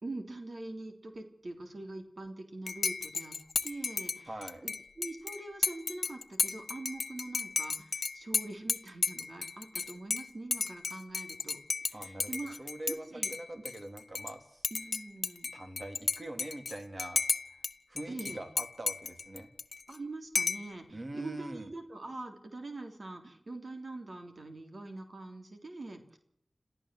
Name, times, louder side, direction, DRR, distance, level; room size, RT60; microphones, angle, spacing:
voice 1, 0.0-3.4 3.6-4.3 4.6-11.6 11.9-12.6 12.9-13.6 14.7-15.5 18.1-18.4 19.9-26.2, right 2 dB, 65° right, 5 dB, 3.5 m, -43 dB
Dishes pots and pans / Cutlery silverware / Chink clink, 2.7-13.0 13.2-14.3 14.6-17.7 18.0-20.0 20.3-20.7, left 4 dB, 85° left, 0.8 m, -34 dB
voice 2, 4.3-4.6 11.9-14.6 15.5-17.2 17.5-17.6 17.9-19.5 20.9-21.7, right 1 dB, 45° right, 6 dB, 3.5 m, -43 dB
27.5 x 14.5 x 7.8 m, 0.73 s
wide cardioid pair, 55°, 0 cm